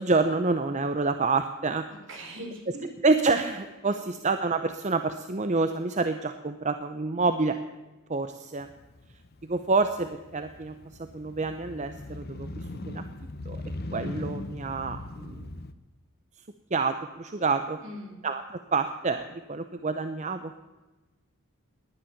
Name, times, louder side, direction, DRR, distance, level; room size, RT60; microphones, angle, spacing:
voice 1, 0.0-1.9 3.0-7.6 8.1-8.7 9.4-10.7 11.1-12.5 12.9-13.0 13.5-13.6 13.9-15.5 16.7-17.8 18.2-20.5, right 3 dB, 35° right, 9 dB, 0.7 m, -27 dB
voice 2, 1.9-2.9 17.8-18.2, equal, 60° right, 2 dB, 4.1 m, -41 dB
Motorcycle, 8.6-15.7, left 2 dB, 45° left, 0.9 m, -39 dB
19.0 x 10.5 x 7.1 m, 1.1 s
head